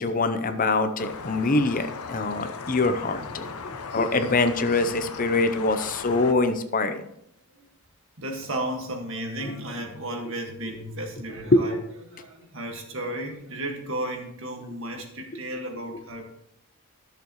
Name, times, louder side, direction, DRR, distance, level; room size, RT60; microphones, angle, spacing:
voice 1, 0.0-3.5 3.9-7.0 11.5-11.6, left 3 dB, 40° left, 9 dB, 0.6 m, -24 dB
sound 1, 1.0-6.3, left 4 dB, 80° left, 0.8 m, -38 dB
voice 2, 8.2-11.8 12.0-16.3, right 1 dB, 60° right, 2 dB, 1.8 m, -34 dB
13.5 x 6.9 x 3.1 m, 0.75 s
head